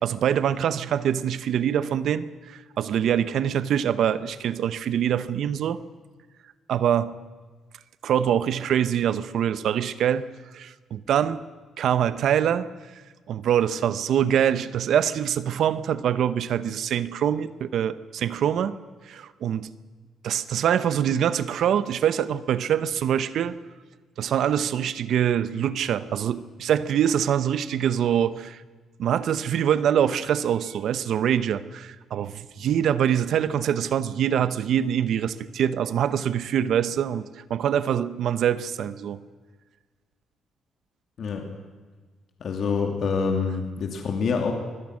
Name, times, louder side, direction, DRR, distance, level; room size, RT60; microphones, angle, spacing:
voice 1, 0.0-5.8 6.7-7.2 8.0-10.2 10.5-11.4 11.8-12.7 13.3-18.7 19.1-19.7 20.2-23.5 24.2-28.6 29.0-39.2, right 9 dB, 70° right, 14 dB, 0.9 m, -24 dB
voice 2, 41.2-41.5 42.4-44.5, left 5 dB, 60° left, 3 dB, 2.6 m, -26 dB
24.0 x 17.0 x 6.4 m, 1.4 s
cardioid pair, 90°, 0 cm